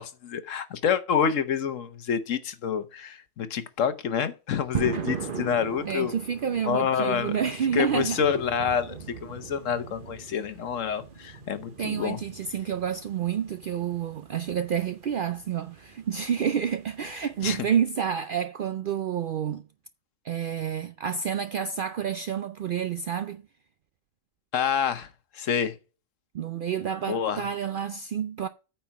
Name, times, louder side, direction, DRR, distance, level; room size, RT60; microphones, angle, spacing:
voice 1, 0.0-6.1 6.6-7.4 7.7-12.2 17.4-17.7 24.5-25.1 25.3-25.8 27.1-27.5, left 7 dB, 75° left, 1.3 m, -27 dB
sound 1, 4.7-17.7, right 6 dB, 45° right, 1.1 m, -40 dB
voice 2, 5.9-8.2 11.8-19.6 20.2-23.4 26.3-28.5, right 8 dB, 65° right, 0.5 m, -29 dB
8.8 x 4.5 x 5.7 m
omnidirectional pair, 1.4 m